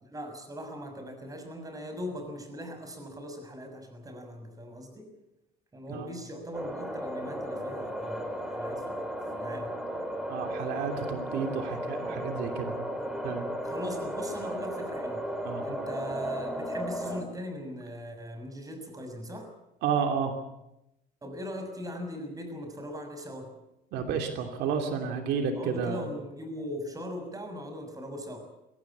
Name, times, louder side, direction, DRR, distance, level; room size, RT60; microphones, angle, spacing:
voice 1, 0.0-5.1 5.7-9.1 9.3-9.7 12.9-13.1 13.6-15.3 15.6-19.5 21.2-23.5 25.5-28.5, equal, 20° right, 6 dB, 6.4 m, -40 dB
sound 1, 6.5-17.2, equal, 5° right, 4.1 m, -35 dB
voice 2, 10.3-12.8 13.2-13.5 15.4-15.6 19.8-20.3 23.9-26.0, right 6 dB, 85° right, 6 dB, 3.0 m, -31 dB
23.0 x 17.0 x 8.7 m, 0.87 s
cardioid pair, 110°, 17 cm